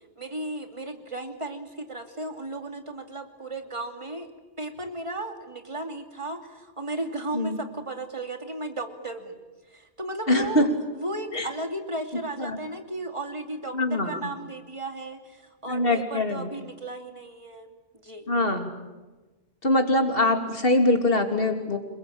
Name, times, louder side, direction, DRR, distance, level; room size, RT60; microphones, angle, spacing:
voice 1, 0.2-4.3 4.6-9.4 9.7-10.7 11.0-17.7 18.0-18.3, right 2 dB, 25° right, 5 dB, 2.7 m, -35 dB
voice 2, 10.3-10.7 11.3-11.5 12.4-12.6 13.7-14.3 15.7-16.5 18.3-18.7 19.6-21.8, left 1 dB, 55° left, 5 dB, 3.2 m, -23 dB
28.5 x 22.0 x 8.9 m, 1.2 s
omnidirectional pair, 1.1 m